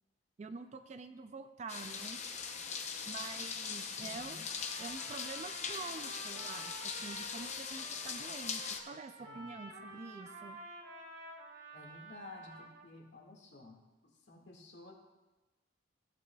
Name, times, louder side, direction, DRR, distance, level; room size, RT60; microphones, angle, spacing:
voice 1, 0.4-2.2 3.1-4.4 4.8-10.6, right 4 dB, 35° right, 9 dB, 0.4 m, -47 dB
sound 1, 1.7-8.8, left 6 dB, 40° left, 0.7 m, -41 dB
voice 2, 4.0-4.5 9.2-9.5 11.7-14.9, left 2 dB, 70° left, 0 dB, 1.8 m, -53 dB
Trumpet, 4.5-12.9, right 2 dB, 85° right, 1.7 m, -51 dB
15.5 x 8.9 x 2.3 m, 1.1 s
head